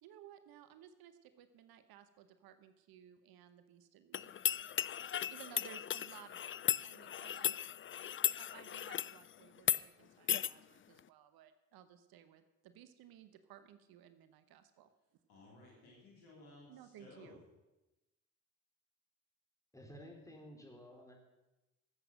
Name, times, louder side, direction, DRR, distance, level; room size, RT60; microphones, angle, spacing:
voice 1, 0.0-4.3 5.3-7.5 8.3-14.9 16.7-17.4, right 10 dB, 75° right, 11 dB, 1.0 m, -58 dB
sound 1, 4.1-9.2 9.6-9.8 10.3-10.5, left 10 dB, 35° left, 0.4 m, -36 dB
voice 2, 15.3-17.4, left 2 dB, 90° left, -3 dB, 3.7 m, -58 dB
voice 3, 19.7-21.1, equal, 10° left, 0 dB, 4.3 m, -53 dB
12.5 x 8.1 x 7.7 m, 1.0 s
hypercardioid pair, 45°, 36 cm